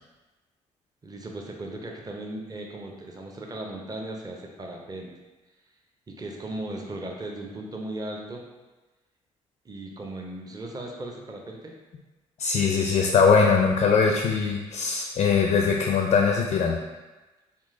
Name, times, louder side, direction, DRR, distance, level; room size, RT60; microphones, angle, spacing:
voice 1, 1.0-5.1 6.1-8.5 9.6-11.7, right 1 dB, 25° right, 1 dB, 0.6 m, -37 dB
voice 2, 12.4-16.8, left 5 dB, 40° left, 2 dB, 0.4 m, -21 dB
3.6 x 2.4 x 2.6 m, 1.2 s
figure-of-eight pair, 45°, 16 cm